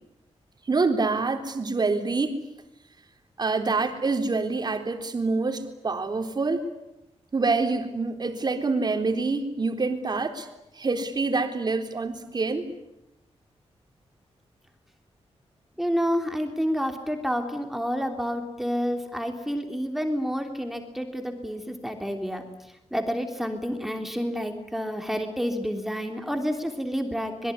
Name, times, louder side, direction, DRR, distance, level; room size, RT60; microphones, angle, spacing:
voice 1, 0.7-2.4 3.4-6.7 7.3-10.5 10.7-12.7, right 3 dB, 40° right, 5 dB, 3.7 m, -26 dB
voice 2, 15.8-27.5, equal, ahead, 4 dB, 3.2 m, -29 dB
26.0 x 22.5 x 9.9 m, 0.88 s
wide cardioid pair, 120°, 11 cm